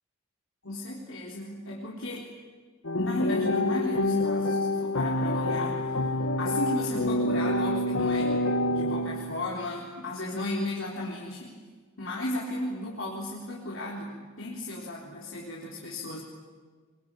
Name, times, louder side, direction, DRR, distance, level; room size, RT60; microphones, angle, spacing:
voice 1, 0.6-2.3 3.0-5.9 6.4-11.6 12.0-16.2, left 1 dB, 70° left, -4 dB, 4.0 m, -34 dB
sound 1, 2.8-9.5, left 2 dB, 85° left, 1.8 m, -27 dB
24.0 x 23.5 x 9.9 m, 1.5 s
head